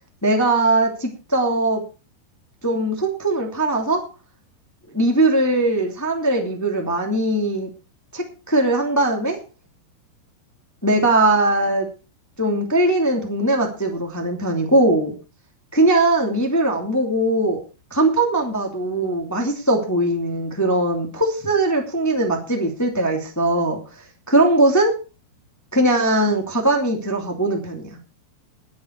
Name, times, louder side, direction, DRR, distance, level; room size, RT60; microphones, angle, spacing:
voice 1, 0.2-1.8 2.6-4.0 4.9-7.7 8.1-9.4 10.8-11.9 12.4-15.1 15.7-17.6 17.9-23.8 24.3-24.9 25.7-28.0, right 2 dB, 10° left, 2 dB, 1.0 m, -20 dB
20.5 x 8.0 x 4.6 m, 0.33 s
omnidirectional pair, 5.2 m